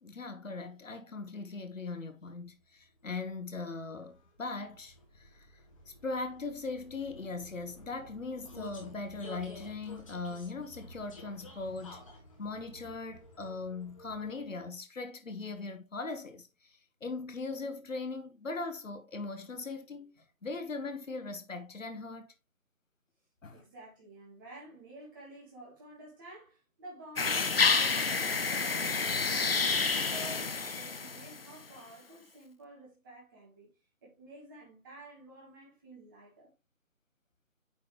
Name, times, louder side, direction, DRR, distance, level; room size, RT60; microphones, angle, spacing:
voice 1, 0.0-5.5 5.9-12.0 12.4-20.1 20.4-22.3 23.4-23.6, left 3 dB, 60° left, 1.4 m, -40 dB
Vehicle, 2.8-14.7, left 2 dB, 25° left, 1.3 m, -52 dB
voice 2, 23.5-33.7 34.0-36.5, right 2 dB, 15° right, 1.6 m, -51 dB
sound 1, 27.2-31.5, left 4 dB, 45° left, 0.6 m, -29 dB
8.7 x 4.2 x 3.1 m
figure-of-eight pair, 155°, 42 cm